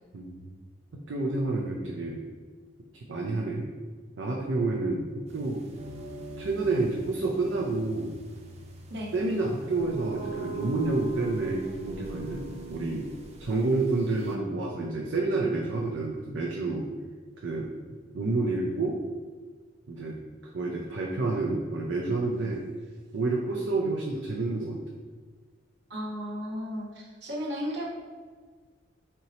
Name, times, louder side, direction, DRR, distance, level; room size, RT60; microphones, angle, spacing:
voice 1, 0.1-0.5 0.9-2.2 2.9-3.7 4.2-5.6 6.4-8.1 9.1-13.1 13.4-16.9 17.4-17.7 18.1-19.0 19.9-22.7 23.1-24.8, right 3 dB, 90° right, -1 dB, 0.5 m, -29 dB
sound 1, 5.3-14.3, right 3 dB, 35° right, 0.6 m, -42 dB
voice 2, 25.9-27.9, equal, 65° right, -4 dB, 1.1 m, -34 dB
4.4 x 2.8 x 4.1 m, 1.5 s
head